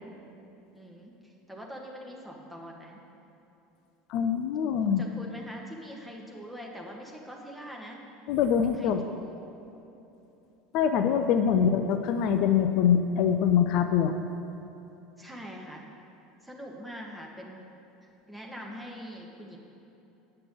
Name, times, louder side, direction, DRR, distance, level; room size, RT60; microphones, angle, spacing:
voice 1, 0.7-3.0 4.9-8.0 8.6-9.4 11.5-11.8 15.2-15.8 16.4-17.6 18.0-19.6, equal, 5° right, -1 dB, 1.5 m, -43 dB
voice 2, 4.1-5.0 8.3-9.0 10.7-14.2, left 8 dB, 55° left, 7 dB, 0.4 m, -24 dB
8.6 x 5.9 x 6.2 m, 3.0 s
figure-of-eight pair, 70°, 0 cm